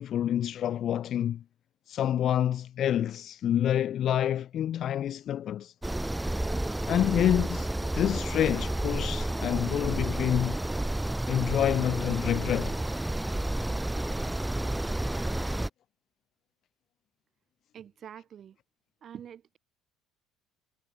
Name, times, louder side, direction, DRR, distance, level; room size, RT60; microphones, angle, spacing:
voice 1, 0.0-1.4 1.9-5.7 6.9-7.7 7.9-10.6 11.3-12.8, left 10 dB, 45° left, 1.4 m, -27 dB
sound 1, 5.8-15.7, right 1 dB, 10° right, 1.3 m, -31 dB
voice 2, 17.7-18.6 19.0-19.6, right 9 dB, 40° right, 7.0 m, -46 dB
figure-of-eight pair, 55°, 0 cm